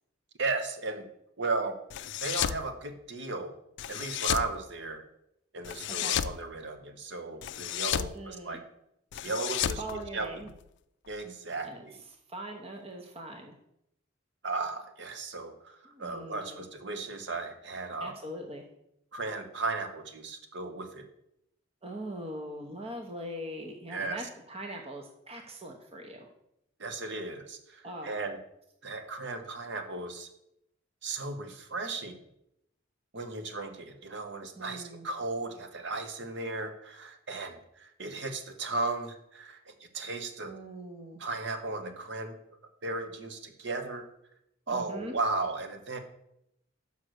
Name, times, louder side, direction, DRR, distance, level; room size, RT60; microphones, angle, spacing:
voice 1, 0.4-1.1 1.4-1.8 2.2-3.5 3.9-5.0 5.5-8.6 9.2-10.3 11.1-12.0 14.4-18.1 19.1-21.1 23.9-24.2 26.8-28.4 28.8-30.3 31.0-32.2 33.1-40.5 41.2-42.3 42.8-44.0 44.7-46.0, right 3 dB, 65° right, 7 dB, 1.0 m, -35 dB
sound 1, 1.9-2.6 3.8-4.5 5.6-6.4 7.4-8.1 9.1-10.6, left 10 dB, 65° left, 0.4 m, -32 dB
voice 2, 8.1-8.6 9.8-10.5 11.6-11.8 12.3-13.6 15.8-16.6 18.0-18.6 21.8-26.3 27.8-28.2 34.6-35.1 40.5-41.2 44.7-45.1, right 1 dB, 30° right, 3 dB, 0.9 m, -41 dB
6.4 x 5.5 x 6.3 m, 0.77 s
head